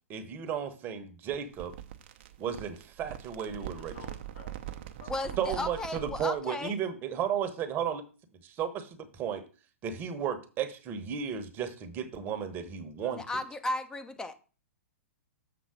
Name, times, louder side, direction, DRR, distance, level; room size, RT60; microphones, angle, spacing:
voice 1, 0.1-1.7 2.4-3.9 5.4-8.0 8.4-9.4 9.8-13.2, right 8 dB, 25° right, 1.1 m, -34 dB
sound 1, 1.3-6.4, right 12 dB, 45° right, 0.8 m, -42 dB
voice 2, 3.6-5.7 13.0-13.3, left 3 dB, 65° left, 3.6 m, -52 dB
voice 3, 5.1-6.8 13.1-14.4, left 2 dB, 10° left, 0.8 m, -35 dB
7.0 x 3.9 x 6.4 m
figure-of-eight pair, 110°, 8 cm